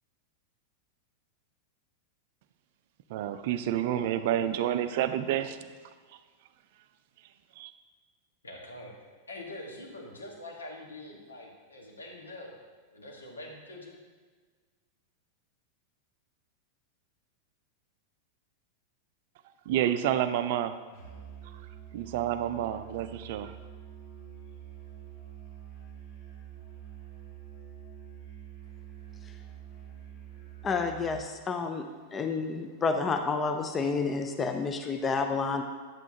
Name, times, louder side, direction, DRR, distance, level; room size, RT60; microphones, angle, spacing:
voice 1, 3.1-5.6 7.6-7.7 19.7-20.8 21.9-23.5, right 11 dB, 50° right, 11 dB, 0.4 m, -29 dB
voice 2, 8.4-8.9 9.3-12.5 12.9-13.9, left 1 dB, 75° left, -1 dB, 1.6 m, -44 dB
Musical instrument, 20.9-31.3, right 9 dB, 45° left, 1.6 m, -47 dB
voice 3, 30.6-35.6, left 4 dB, 20° left, 6 dB, 0.5 m, -30 dB
8.9 x 8.2 x 2.8 m, 1.5 s
figure-of-eight pair, 90°, 0 cm